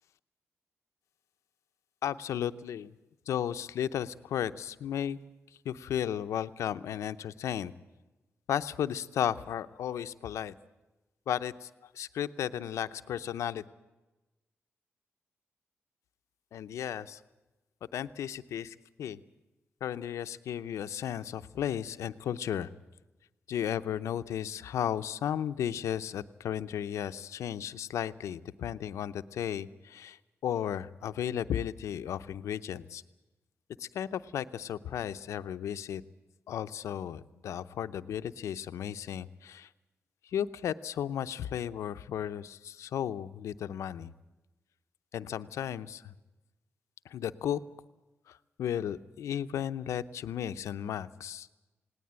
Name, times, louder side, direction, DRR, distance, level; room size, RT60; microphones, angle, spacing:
voice 1, 2.0-2.9 3.3-5.2 5.6-7.7 8.5-10.5 11.3-13.6 16.5-17.2 17.9-19.2 19.8-22.7 23.5-33.0 33.8-36.0 36.5-39.7 40.2-44.1 45.1-46.1 47.0-47.6 48.3-51.5, left 10 dB, 90° left, 12 dB, 0.7 m, -34 dB
19.5 x 18.5 x 8.9 m, 1.1 s
cardioid pair, 70°, 5 cm